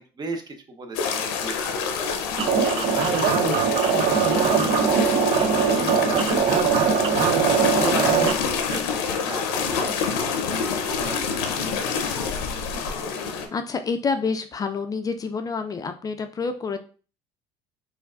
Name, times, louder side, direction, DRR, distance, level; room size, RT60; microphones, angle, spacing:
voice 1, 0.0-2.2 2.4-6.7 7.1-8.8 9.2-10.7 11.0-12.1 12.7-12.9, right 3 dB, 35° right, 6 dB, 0.8 m, -37 dB
sound 1, 0.9-13.5, left 6 dB, 85° left, 0.6 m, -27 dB
sound 2, 2.4-8.3, right 7 dB, 50° right, 0.5 m, -21 dB
voice 2, 13.5-16.8, left 4 dB, 30° left, 7 dB, 0.4 m, -28 dB
4.4 x 2.5 x 2.4 m, 0.37 s
supercardioid pair, 80°, 13 cm